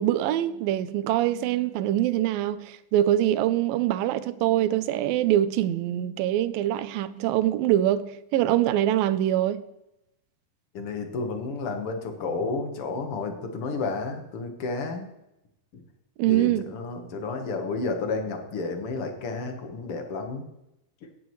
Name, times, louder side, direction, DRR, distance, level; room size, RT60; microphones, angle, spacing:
voice 1, 0.0-9.6 16.2-16.7, right 12 dB, 85° right, 2.4 m, -24 dB
voice 2, 10.7-15.1 15.7-15.8 16.3-20.5, left 3 dB, 55° left, 1.7 m, -31 dB
15.5 x 10.0 x 3.1 m
omnidirectional pair, 4.0 m